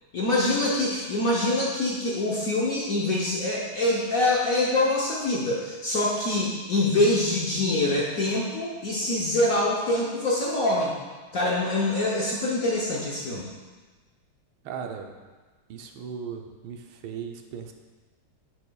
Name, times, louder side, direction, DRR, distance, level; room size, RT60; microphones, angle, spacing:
voice 1, 0.1-10.9 11.3-13.5, left 2 dB, 60° left, -4 dB, 0.9 m, -25 dB
voice 2, 14.6-15.1 15.7-17.7, right 7 dB, 80° right, 4 dB, 1.4 m, -37 dB
7.7 x 7.7 x 2.3 m, 1.3 s
omnidirectional pair, 2.3 m